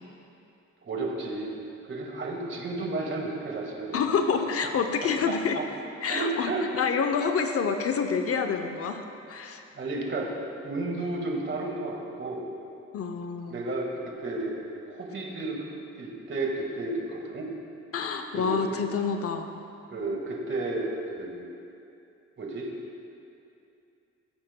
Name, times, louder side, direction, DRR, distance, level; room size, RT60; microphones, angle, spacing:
voice 1, 0.8-1.5 1.9-4.0 6.1-6.6 9.7-10.3 10.6-12.5 13.5-14.6 14.9-15.6 16.0-17.5 18.3-18.6 19.9-21.4 22.4-22.7, right 2 dB, 40° right, -1 dB, 1.7 m, -32 dB
voice 2, 3.9-5.6 6.0-9.0 9.3-9.6 12.9-13.6 17.9-19.4, left 5 dB, 50° left, 6 dB, 0.6 m, -27 dB
15.5 x 8.7 x 2.2 m, 2.7 s
cardioid pair, 90°, 30 cm